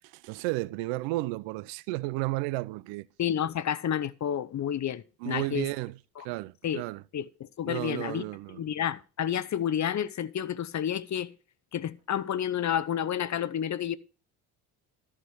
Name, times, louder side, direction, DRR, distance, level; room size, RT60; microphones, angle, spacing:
voice 1, 0.1-3.1 5.2-6.0 6.2-7.0 7.7-8.6, right 20 dB, 80° right, 0.6 m, -33 dB
voice 2, 3.2-5.7 6.2-6.3 6.6-6.8 7.1-8.2 8.6-11.3 11.7-14.0, left 9 dB, 40° left, 0.9 m, -30 dB
14.0 x 5.0 x 6.5 m
supercardioid pair, 70°, 43 cm